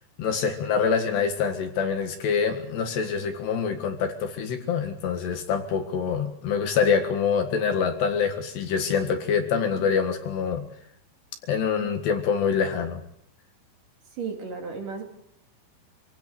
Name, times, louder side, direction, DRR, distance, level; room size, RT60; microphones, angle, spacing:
voice 1, 0.2-10.7 11.5-13.0, left 6 dB, 65° left, 6 dB, 3.5 m, -25 dB
voice 2, 14.2-15.0, right 5 dB, 45° right, 3 dB, 3.7 m, -33 dB
26.0 x 16.5 x 8.1 m, 0.71 s
omnidirectional pair, 5.8 m